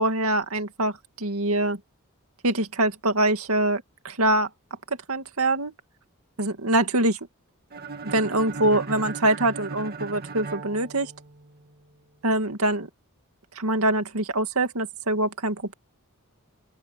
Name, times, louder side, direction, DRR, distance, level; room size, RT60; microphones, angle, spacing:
voice 1, 0.0-1.8 2.4-4.5 5.1-5.7 6.4-7.2 8.0-11.1 12.2-12.9 13.6-15.7, right 1 dB, 90° right, 2.2 m, -24 dB
sound 1, 7.7-11.6, right 4 dB, 45° right, 2.2 m, -37 dB
open air
head